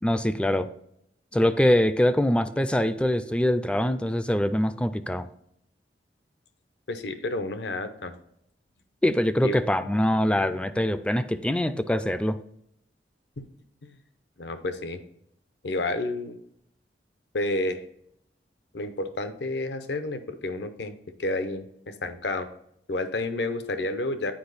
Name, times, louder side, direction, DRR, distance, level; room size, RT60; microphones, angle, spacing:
voice 1, 0.0-0.7 1.3-5.3 9.0-12.4, left 1 dB, 5° left, 12 dB, 0.3 m, -23 dB
voice 2, 6.9-8.1 9.4-9.6 13.4-13.5 13.8-13.9 14.4-15.0 15.6-16.4 17.3-17.8 18.7-22.5 22.9-24.3, left 2 dB, 70° left, 10 dB, 0.7 m, -30 dB
8.7 x 4.9 x 4.0 m, 0.74 s
head